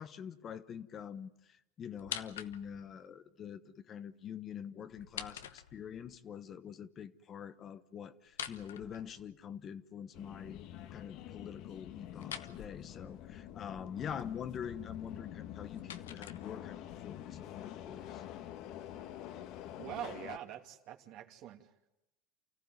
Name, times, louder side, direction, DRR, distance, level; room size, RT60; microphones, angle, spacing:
voice 1, 0.0-10.6 10.9-18.2, left 8 dB, 35° left, 1.1 m, -45 dB
sound 1, 2.0-2.9 4.9-6.1 8.2-9.6 12.2-12.6 15.3-16.9, left 9 dB, 90° left, 1.1 m, -45 dB
Subway metro underground, 10.1-20.4, left 11 dB, 55° left, 1.4 m, -47 dB
voice 2, 19.8-21.9, right 11 dB, 55° right, 2.7 m, -45 dB
29.0 x 15.0 x 9.6 m
hypercardioid pair, 100°, 0 cm